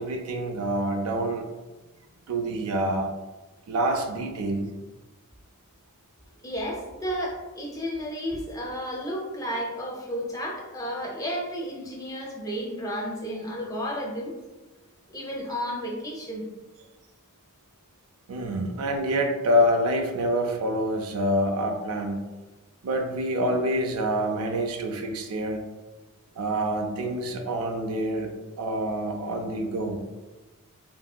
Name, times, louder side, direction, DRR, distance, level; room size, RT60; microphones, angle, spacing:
voice 1, 0.0-1.4 2.3-3.1 3.7-4.7 18.3-22.2 22.8-25.6 26.4-28.3 28.6-30.0, equal, 80° right, 4 dB, 0.4 m, -26 dB
voice 2, 6.4-14.3 15.1-16.4, equal, 15° left, -2 dB, 0.5 m, -32 dB
2.9 x 2.7 x 2.3 m, 1.1 s
head